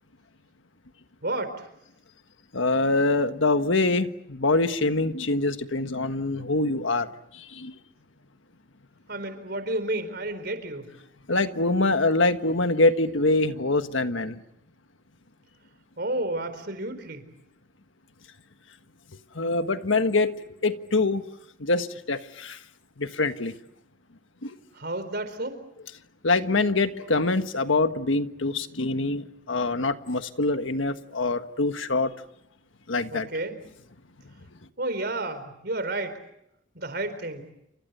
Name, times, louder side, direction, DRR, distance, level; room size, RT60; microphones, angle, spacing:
voice 1, 1.2-1.7 9.1-10.9 16.0-17.3 24.7-25.6 33.1-33.6 34.8-36.2 36.7-37.5, right 2 dB, 55° right, 4.3 m, -31 dB
voice 2, 2.5-7.1 7.3-7.8 11.3-14.4 19.3-20.3 20.6-21.2 21.6-22.6 23.0-23.5 24.4-24.5 26.2-32.1 32.9-33.3, left 2 dB, 85° left, 1.5 m, -24 dB
29.5 x 26.0 x 6.9 m
head